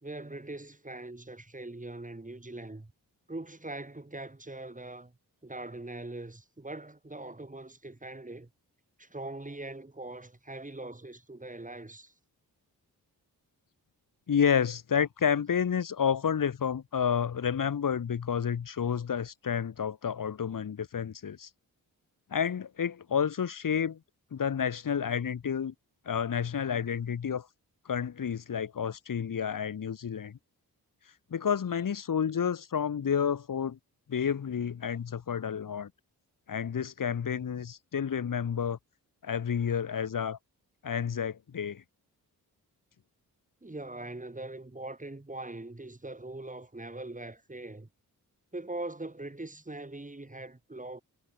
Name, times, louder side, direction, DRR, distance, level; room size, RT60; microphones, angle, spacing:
voice 1, 0.0-2.9 3.3-5.1 5.4-8.5 9.0-12.1 43.6-47.9 48.5-51.0, right 2 dB, 20° right, 3.8 m, -42 dB
voice 2, 14.3-21.5 22.3-24.0 24.3-25.7 26.0-27.5 27.8-30.4 31.3-33.8 34.1-35.9 36.5-38.8 39.2-40.4 40.8-41.8, left 7 dB, 50° left, 1.3 m, -30 dB
supercardioid pair, 45°, 41 cm